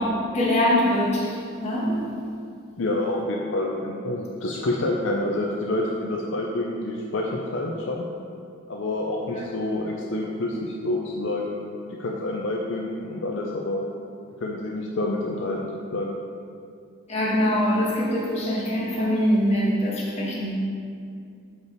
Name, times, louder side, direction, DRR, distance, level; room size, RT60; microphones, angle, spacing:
voice 1, 0.0-2.0 17.1-20.5, equal, 30° left, -6 dB, 1.5 m, -23 dB
voice 2, 2.8-8.1 8.7-11.6 12.0-13.9 14.4-16.2, left 2 dB, 60° left, -1 dB, 0.6 m, -28 dB
6.7 x 5.4 x 4.6 m, 2.4 s
head